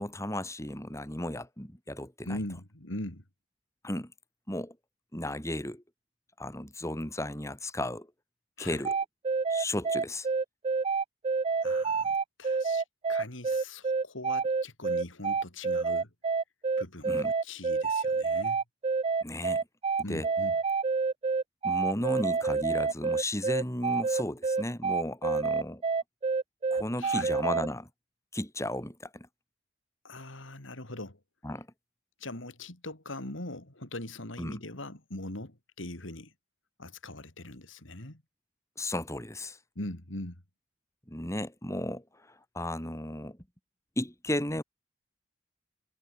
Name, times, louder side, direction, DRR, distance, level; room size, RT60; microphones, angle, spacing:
voice 1, 0.0-2.4 3.8-4.1 4.5-4.8 5.1-5.8 6.4-8.1 8.6-9.0 9.5-10.3 17.0-17.3 19.2-19.6 20.0-20.3 21.6-25.8 26.7-27.9 28.3-29.3 31.4-31.7 34.4-34.6 38.8-39.6 41.1-43.4 44.0-44.6, left 1 dB, 15° left, 4.9 m, -34 dB
voice 2, 2.2-3.2 8.6-8.8 11.6-12.8 13.1-16.1 16.8-18.6 20.0-20.6 27.0-27.3 30.0-31.2 32.2-36.3 36.8-38.2 39.8-40.4, left 1 dB, 80° left, 3.8 m, -41 dB
sound 1, 8.8-27.7, right 4 dB, 30° right, 0.3 m, -28 dB
head